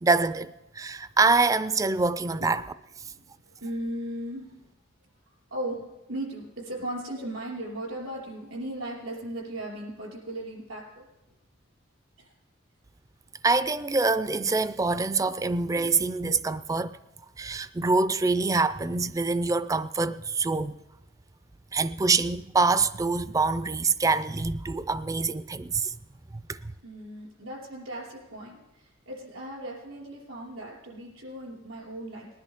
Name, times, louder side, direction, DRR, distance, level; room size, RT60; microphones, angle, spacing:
voice 1, 0.0-2.6 13.4-17.0 17.4-20.7 21.7-26.0 26.5-26.7, right 3 dB, 15° right, 0.3 m, -25 dB
voice 2, 3.6-4.5 5.5-11.0 12.2-12.3 26.8-32.3, right 1 dB, 90° right, 4.8 m, -37 dB
20.0 x 10.5 x 3.6 m
head